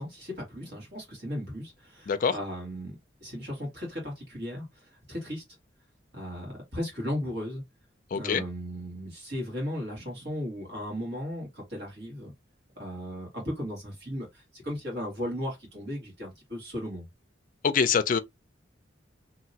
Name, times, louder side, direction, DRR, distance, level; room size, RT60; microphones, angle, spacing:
voice 1, 0.0-5.4 6.1-7.6 8.1-12.3 12.8-17.1, equal, 60° right, 1.9 m, -36 dB
voice 2, 8.1-8.4 17.6-18.2, left 6 dB, 45° left, 0.4 m, -24 dB
2.9 x 2.8 x 2.7 m
head